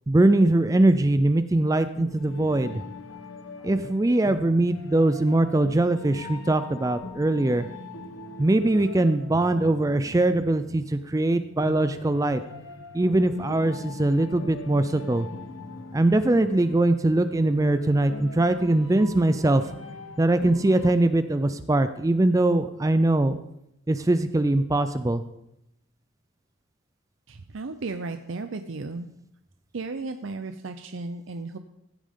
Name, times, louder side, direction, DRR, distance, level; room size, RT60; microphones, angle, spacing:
voice 1, 0.1-2.8 3.6-7.7 8.4-12.4 12.9-15.3 15.9-19.6 20.2-23.4 23.9-25.2, right 2 dB, 15° right, 11 dB, 0.4 m, -22 dB
sound 1, 2.0-20.9, left 2 dB, 75° left, 1.1 m, -41 dB
voice 2, 27.3-29.1 29.7-31.6, right 3 dB, 70° right, 8 dB, 0.6 m, -34 dB
15.5 x 8.5 x 3.7 m, 0.82 s
head